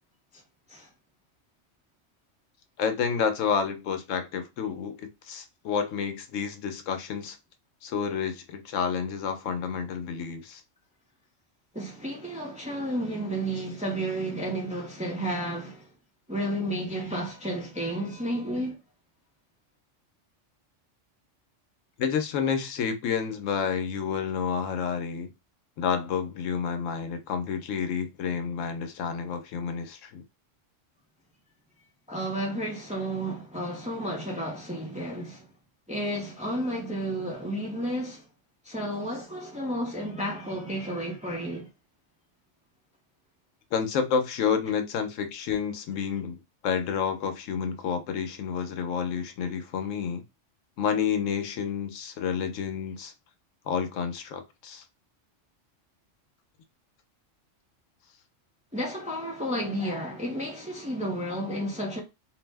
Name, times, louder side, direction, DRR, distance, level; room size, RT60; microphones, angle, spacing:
voice 1, 2.8-7.4 7.8-10.6 22.0-25.3 25.8-30.2 43.7-50.2 50.8-53.1 53.7-54.8, left 6 dB, 85° left, 1.0 m, -29 dB
voice 2, 11.7-15.9 16.3-18.8 32.1-35.5 35.9-38.2 38.6-41.7 58.7-62.0, right 1 dB, 10° right, 0.5 m, -32 dB
2.6 x 2.0 x 3.3 m
omnidirectional pair, 1.3 m